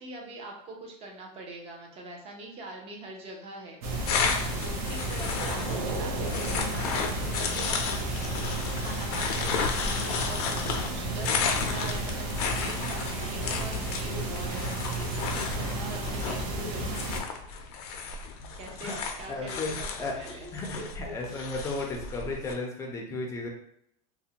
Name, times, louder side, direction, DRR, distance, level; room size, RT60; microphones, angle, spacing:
voice 1, 0.0-3.8 4.3-8.4 8.8-10.5 10.9-17.2 18.5-19.9 20.2-21.4, right 1 dB, 30° right, 1 dB, 0.6 m, -43 dB
sound 1, 3.8-17.2, right 2 dB, 65° right, 0.7 m, -32 dB
sound 2, 4.1-22.5, left 5 dB, 75° left, 0.4 m, -33 dB
voice 2, 19.3-20.2 20.5-23.5, left 2 dB, 15° left, 0 dB, 0.4 m, -34 dB
2.5 x 2.1 x 2.8 m, 0.73 s
supercardioid pair, 150°, 20 cm